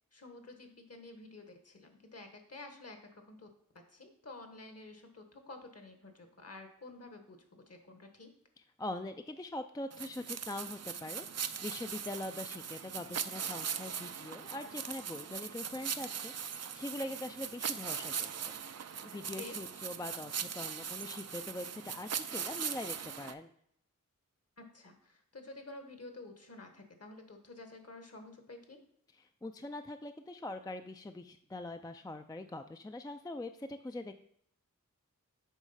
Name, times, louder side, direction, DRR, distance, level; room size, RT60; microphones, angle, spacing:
voice 1, 0.1-3.5 3.9-8.3 19.4-19.6 24.6-28.8, left 2 dB, 50° left, 5 dB, 1.3 m, -50 dB
voice 2, 8.8-18.3 19.0-23.5 29.2-34.2, left 2 dB, 10° left, 7 dB, 0.4 m, -43 dB
sound 1, 9.9-23.3, right 7 dB, 55° right, 0.5 m, -40 dB
8.2 x 3.1 x 5.6 m, 0.68 s
wide cardioid pair, 55°, 32 cm